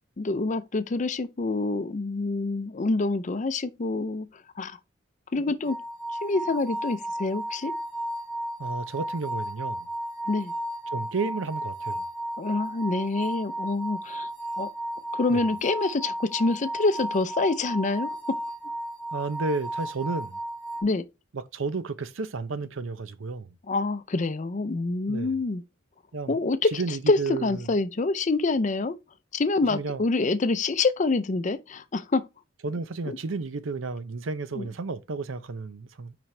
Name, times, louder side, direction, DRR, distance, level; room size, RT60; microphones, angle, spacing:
voice 1, 0.2-4.3 4.6-4.8 5.3-5.8 6.2-7.7 10.3-10.5 12.4-14.3 14.6-14.7 15.1-18.2 20.8-21.0 23.7-25.6 26.3-29.0 29.3-32.2 33.1-33.2 34.6-34.7, left 3 dB, 40° left, 0.5 m, -26 dB
sound 1, 5.6-20.8, right 1 dB, 35° right, 2.5 m, -34 dB
voice 2, 8.6-9.9 10.9-12.0 15.3-15.4 19.1-20.4 21.3-23.6 25.1-25.3 26.1-26.4 26.7-27.7 29.6-30.0 32.6-36.2, right 4 dB, 90° right, 0.6 m, -32 dB
5.9 x 5.2 x 3.2 m
head